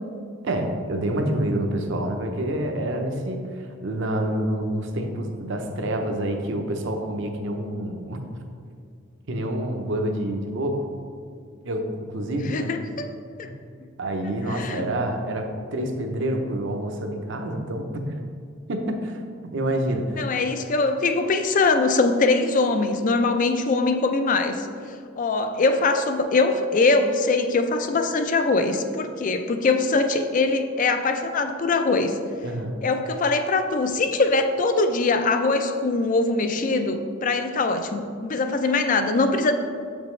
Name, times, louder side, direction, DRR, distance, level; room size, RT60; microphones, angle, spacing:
voice 1, 0.4-8.2 9.3-10.8 11.6-12.7 13.4-13.5 14.0-18.0 18.7-20.2 32.4-32.8, right 1 dB, 60° right, 4 dB, 0.7 m, -27 dB
voice 2, 12.4-13.1 13.4-13.5 14.5-14.9 20.2-24.7 25.2-32.2 32.8-39.5, left 3 dB, 40° left, 8 dB, 0.4 m, -22 dB
7.2 x 5.2 x 3.2 m, 2.3 s
head